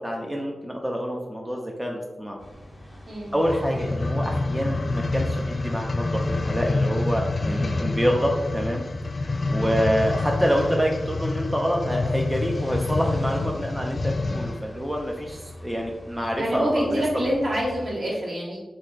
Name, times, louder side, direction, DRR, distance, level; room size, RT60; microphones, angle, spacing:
voice 1, 0.0-2.4 3.3-8.8 9.5-17.0, equal, 10° right, 0 dB, 0.6 m, -27 dB
sound 1, 2.4-17.9, equal, 25° left, 0.9 m, -45 dB
sound 2, 3.3-14.7 15.3-15.4, left 2 dB, 55° left, 0.3 m, -27 dB
voice 2, 7.4-8.1 9.4-9.7 16.3-18.6, equal, 60° right, -6 dB, 1.5 m, -28 dB
3.1 x 2.7 x 3.8 m, 1.1 s
cardioid pair, 45°, 0 cm